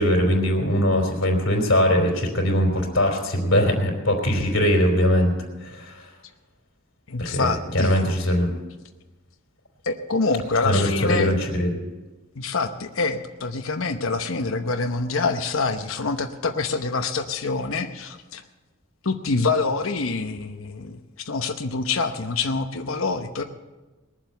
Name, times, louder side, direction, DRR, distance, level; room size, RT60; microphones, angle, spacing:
voice 1, 0.0-5.3 5.6-6.0 7.2-8.5 10.6-11.7, equal, 70° left, 2 dB, 3.4 m, -21 dB
voice 2, 7.1-8.1 9.8-11.3 12.4-18.4 19.0-21.0 21.2-23.4, left 3 dB, 90° left, 5 dB, 0.9 m, -26 dB
20.0 x 7.5 x 7.9 m, 1.2 s
head